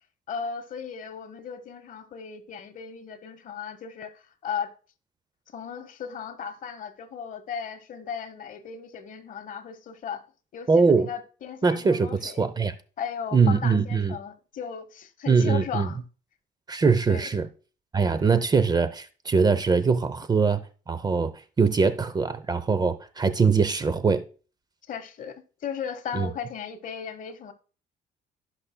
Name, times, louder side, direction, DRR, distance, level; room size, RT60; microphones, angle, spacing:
voice 1, 0.3-4.7 5.5-10.3 10.5-12.5 13.0-16.0 17.1-17.3 24.9-27.5, left 7 dB, 50° left, 1.1 m, -36 dB
voice 2, 10.7-11.1 11.6-12.7 13.3-14.2 15.3-15.9 16.7-17.5 17.9-20.6 20.9-24.2 26.1-26.3, right 5 dB, 25° right, 0.7 m, -22 dB
17.0 x 5.9 x 2.2 m
cardioid pair, 110°, 17 cm